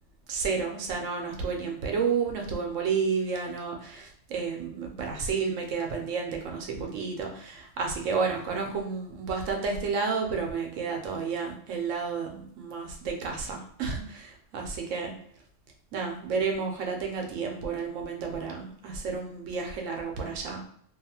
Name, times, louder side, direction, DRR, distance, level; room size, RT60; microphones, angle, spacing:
voice 1, 0.3-15.1 15.9-20.6, right 5 dB, 85° right, 1 dB, 1.0 m, -31 dB
2.6 x 2.4 x 2.8 m, 0.66 s
omnidirectional pair, 1.3 m